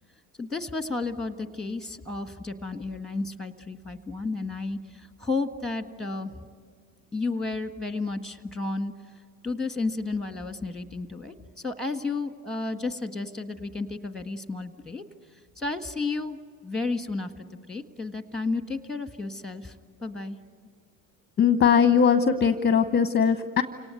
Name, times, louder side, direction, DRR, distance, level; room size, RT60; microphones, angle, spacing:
voice 1, 0.4-6.3 7.1-8.9 9.4-11.3 11.6-15.0 15.6-16.4 16.6-19.7 20.0-20.4, left 3 dB, ahead, 9 dB, 1.6 m, -32 dB
voice 2, 21.4-23.6, left 7 dB, 20° left, 11 dB, 0.8 m, -20 dB
28.5 x 18.5 x 9.4 m, 2.1 s
supercardioid pair, 85°, 50 cm